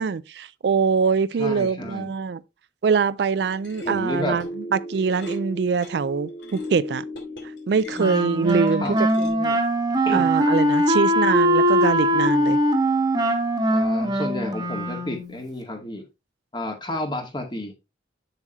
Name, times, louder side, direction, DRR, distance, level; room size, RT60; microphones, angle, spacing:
voice 1, 0.0-2.4 2.8-7.0 7.7-8.8 9.2-9.6 10.1-12.6, right 5 dB, 65° right, 0.4 m, -23 dB
voice 2, 1.4-2.1 3.8-4.4 8.8-9.0 10.1-10.2 13.7-16.0 16.5-17.7, left 1 dB, 25° left, 2.0 m, -31 dB
sound 1, 3.4-9.3, equal, 90° left, 3.1 m, -35 dB
Wind instrument woodwind instrument, 8.0-15.4, equal, 20° right, 1.3 m, -21 dB
8.0 x 7.2 x 3.0 m
head